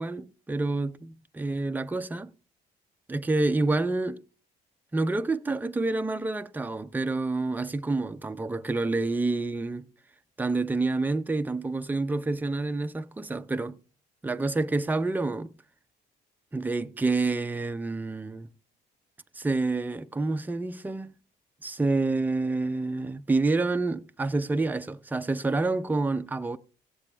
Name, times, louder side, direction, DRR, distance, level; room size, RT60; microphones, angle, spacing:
voice 1, 0.0-2.3 3.1-4.2 4.9-9.9 10.4-13.8 14.2-15.5 16.5-18.5 19.4-21.1 21.6-26.6, right 3 dB, 10° right, 0.5 m, -28 dB
17.0 x 7.4 x 3.3 m
cardioid pair, 110°, 17 cm